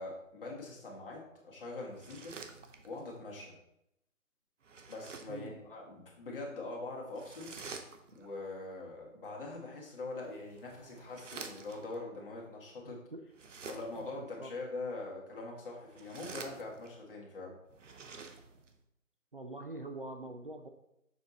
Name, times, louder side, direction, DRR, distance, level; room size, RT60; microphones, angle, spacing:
voice 1, 0.0-2.4 2.8-3.6 4.9-13.0 13.7-17.6, left 2 dB, 40° left, -3 dB, 1.8 m, -43 dB
sound 1, 1.9-3.1 4.6-5.5 7.1-8.3 10.1-12.0 13.3-14.2 15.8-17.0 17.7-18.8, right 4 dB, 60° right, 0.9 m, -49 dB
voice 2, 12.8-13.2 14.0-14.5 19.3-20.7, right 2 dB, 40° right, 4 dB, 0.4 m, -44 dB
6.8 x 4.5 x 4.1 m, 0.82 s
hypercardioid pair, 165°, 42 cm